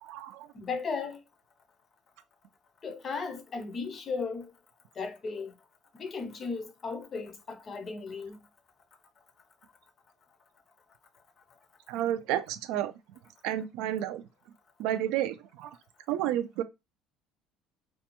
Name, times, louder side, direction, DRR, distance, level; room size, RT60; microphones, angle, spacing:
voice 1, 0.0-0.5 11.9-12.9 13.4-14.2 14.8-15.8 16.1-16.6, right 12 dB, 75° right, 0.4 m, -31 dB
voice 2, 0.5-1.2 2.8-4.5 5.0-5.5 5.9-8.4, left 4 dB, 30° left, 0.5 m, -36 dB
2.5 x 2.2 x 2.9 m
cardioid pair, 140°, 0 cm